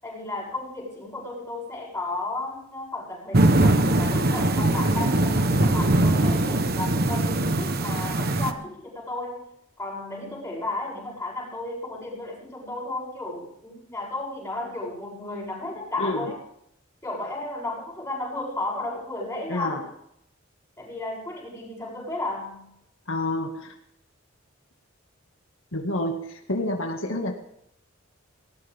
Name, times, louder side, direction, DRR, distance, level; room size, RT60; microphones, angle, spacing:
voice 1, 0.0-9.5 9.8-16.4 17.0-19.8 20.8-22.7, left 2 dB, 10° left, -4 dB, 7.7 m, -33 dB
sound 1, 3.3-8.5, right 1 dB, 50° right, 1.1 m, -21 dB
voice 2, 16.0-16.3 19.5-19.9 23.1-23.7 25.7-27.3, left 1 dB, 75° left, 2 dB, 2.1 m, -28 dB
19.0 x 18.5 x 3.6 m, 0.74 s
head